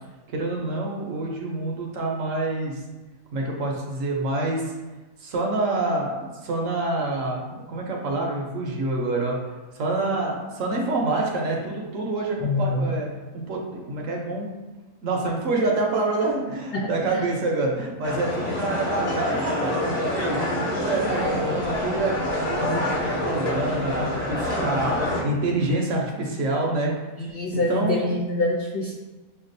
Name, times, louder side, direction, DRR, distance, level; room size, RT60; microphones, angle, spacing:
voice 1, 0.3-2.8 3.3-4.7 5.2-9.4 9.7-13.1 13.3-14.5 15.0-26.9 27.5-28.1, right 2 dB, 60° right, -1 dB, 1.0 m, -27 dB
voice 2, 12.4-12.9 16.7-17.2 21.1-21.6 27.2-28.9, left 2 dB, 75° left, -2 dB, 0.5 m, -26 dB
sound 1, 18.0-25.2, left 1 dB, 30° left, 0.9 m, -27 dB
6.6 x 2.3 x 2.6 m, 1.1 s
omnidirectional pair, 1.6 m